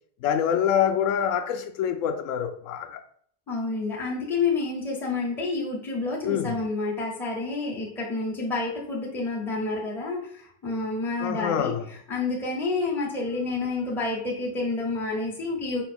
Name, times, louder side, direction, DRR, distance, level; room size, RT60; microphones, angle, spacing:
voice 1, 0.2-3.0 6.2-6.5 11.2-11.8, left 8 dB, 60° left, 0.5 m, -25 dB
voice 2, 3.5-15.8, left 3 dB, 5° left, 0.5 m, -29 dB
5.1 x 2.3 x 4.2 m
cardioid pair, 175°, 46 cm